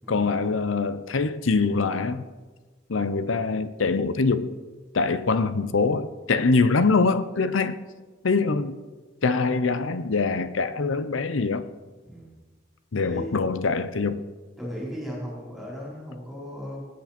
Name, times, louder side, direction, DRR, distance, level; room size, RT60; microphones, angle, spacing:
voice 1, 0.1-2.2 2.9-4.5 4.9-7.8 8.2-8.7 9.2-11.7 12.9-14.2, left 4 dB, 75° left, 0.7 m, -24 dB
voice 2, 12.0-12.3 13.0-13.4 14.6-16.8, equal, ahead, 4.3 m, -36 dB
19.5 x 8.5 x 4.3 m
head